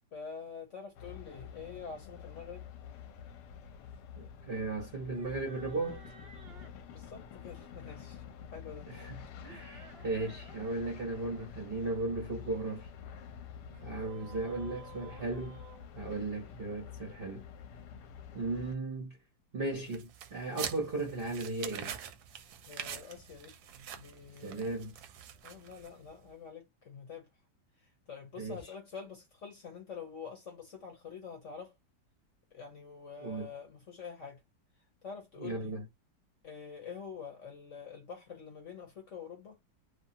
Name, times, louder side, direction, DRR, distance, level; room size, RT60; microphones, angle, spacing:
voice 1, 0.1-2.7 6.8-8.2 8.5-8.9 14.5-15.1 22.7-23.6 24.0-24.7 25.4-27.3 28.1-31.7 32.5-34.4 35.0-35.8 36.4-39.6, left 6 dB, 55° left, 0.9 m, -46 dB
sound 1, 0.9-18.7, left 8 dB, 70° left, 1.1 m, -48 dB
voice 2, 4.2-6.0 8.9-12.9 13.8-15.6 15.9-17.4 18.3-19.2 19.5-21.9 24.4-24.9 28.4-28.6 33.2-33.5 35.4-35.8, right 2 dB, 50° right, 0.7 m, -36 dB
sound 2, 5.0-6.8 9.3-10.8 11.2-11.5 13.7-16.6, right 4 dB, 85° right, 0.5 m, -54 dB
sound 3, 19.9-26.1, right 8 dB, 70° right, 1.0 m, -44 dB
3.0 x 2.3 x 2.7 m
omnidirectional pair, 2.0 m